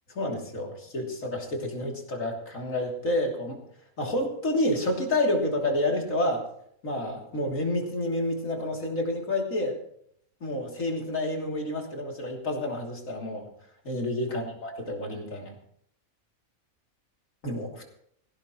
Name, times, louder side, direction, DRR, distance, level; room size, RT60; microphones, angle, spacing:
voice 1, 0.1-3.6 4.0-6.4 6.8-9.8 10.4-13.5 13.8-15.5 17.4-17.9, left 1 dB, 70° left, 0 dB, 3.5 m, -29 dB
17.0 x 17.0 x 3.1 m, 0.66 s
omnidirectional pair, 1.4 m